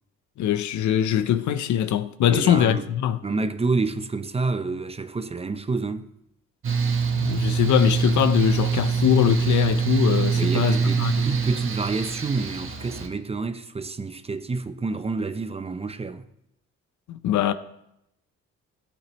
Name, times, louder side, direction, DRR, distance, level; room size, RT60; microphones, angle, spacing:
voice 1, 0.4-3.2 7.1-11.1 17.1-17.5, left 10 dB, 70° left, 0.8 m, -22 dB
voice 2, 2.2-2.9 3.2-6.1 10.3-16.3, right 3 dB, 20° right, 0.6 m, -28 dB
Mechanical fan, 6.6-13.1, right 6 dB, 45° right, 1.4 m, -24 dB
16.0 x 8.4 x 3.1 m
cardioid pair, 90°, 30 cm